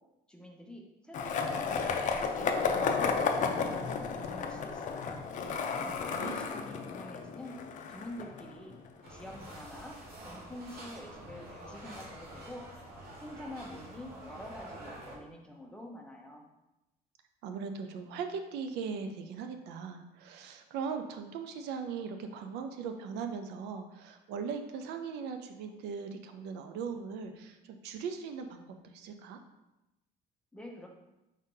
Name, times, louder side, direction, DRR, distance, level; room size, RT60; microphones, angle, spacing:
voice 1, 0.3-2.1 2.3-5.2 6.0-7.6 7.9-8.7 9.1-12.6 13.2-16.4 30.5-30.9, left 1 dB, 5° left, 0 dB, 0.7 m, -47 dB
Skateboard, 1.1-9.1, left 5 dB, 50° left, 0.5 m, -33 dB
voice 2, 5.8-6.4 17.4-29.4, right 6 dB, 85° right, 7 dB, 0.5 m, -39 dB
sound 1, 9.0-15.2, right 1 dB, 65° right, 1.2 m, -47 dB
4.9 x 2.7 x 3.7 m, 0.97 s
cardioid pair, 110°, 17 cm